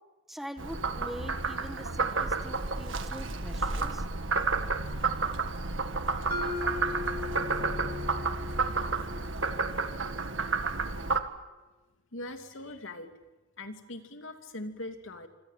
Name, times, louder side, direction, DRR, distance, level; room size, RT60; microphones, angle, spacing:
voice 1, 0.3-4.0, equal, ahead, 8 dB, 1.5 m, -43 dB
Frog, 0.6-11.2, right 4 dB, 75° right, 1.8 m, -31 dB
Mallet percussion, 6.3-10.3, left 3 dB, 55° right, 1.9 m, -39 dB
voice 2, 12.1-13.1 13.6-15.3, left 1 dB, 85° left, 5 dB, 2.9 m, -41 dB
26.5 x 25.5 x 7.6 m, 1.1 s
head